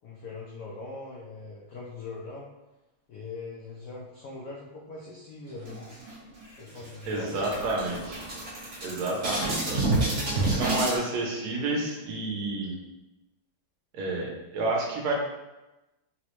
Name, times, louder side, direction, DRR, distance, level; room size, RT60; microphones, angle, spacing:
voice 1, 0.0-2.5 3.1-5.9 6.5-7.7, left 3 dB, 85° left, -4 dB, 0.8 m, -41 dB
sound 1, 5.6-6.4 6.8-6.9 7.2-11.0, right 2 dB, 45° right, 1.0 m, -28 dB
voice 2, 7.1-8.2 8.8-9.8 10.5-12.7 13.9-15.1, right 2 dB, 80° right, -1 dB, 1.6 m, -30 dB
4.3 x 2.0 x 3.0 m, 1.0 s
omnidirectional pair, 2.3 m